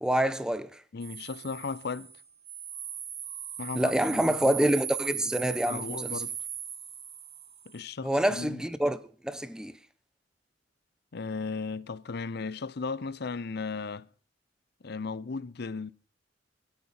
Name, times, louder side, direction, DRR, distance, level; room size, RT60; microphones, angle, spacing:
voice 1, 0.0-0.7 3.7-6.1 8.0-9.7, right 1 dB, 5° right, 1.0 m, -27 dB
voice 2, 0.9-2.1 3.6-4.5 5.7-6.3 7.7-8.6 11.1-14.1 14.8-15.9, left 4 dB, 60° left, 0.7 m, -36 dB
sound 1, 1.0-7.8, right 9 dB, 35° right, 1.8 m, -38 dB
25.5 x 8.7 x 4.3 m
head